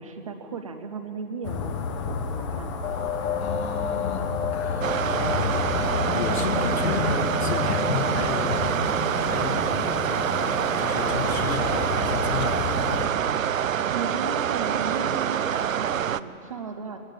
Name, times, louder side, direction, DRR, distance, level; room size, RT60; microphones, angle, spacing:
voice 1, 0.0-2.9 13.4-17.0, right 4 dB, 25° right, 6 dB, 0.7 m, -36 dB
sound 1, 1.4-13.0, left 5 dB, 20° left, 1.0 m, -31 dB
sound 2, 2.8-11.3, left 5 dB, 70° left, 3.7 m, -31 dB
voice 2, 3.4-8.6 9.1-12.8, left 5 dB, 50° left, 4 dB, 2.0 m, -34 dB
sound 3, 4.8-16.2, right 9 dB, 65° right, 0.7 m, -26 dB
22.0 x 18.5 x 9.0 m, 2.9 s
hypercardioid pair, 150°, 42 cm